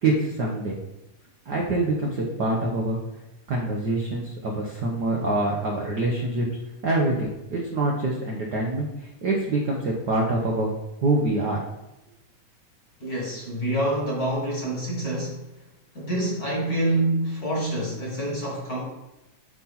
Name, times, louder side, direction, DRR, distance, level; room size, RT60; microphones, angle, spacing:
voice 1, 0.0-0.8 1.5-3.0 3.5-6.5 6.8-11.6, right 2 dB, 75° right, -2 dB, 0.9 m, -25 dB
voice 2, 13.0-15.5 15.9-18.8, right 1 dB, 35° left, -3 dB, 1.9 m, -26 dB
10.0 x 4.1 x 4.2 m, 0.95 s
omnidirectional pair, 3.5 m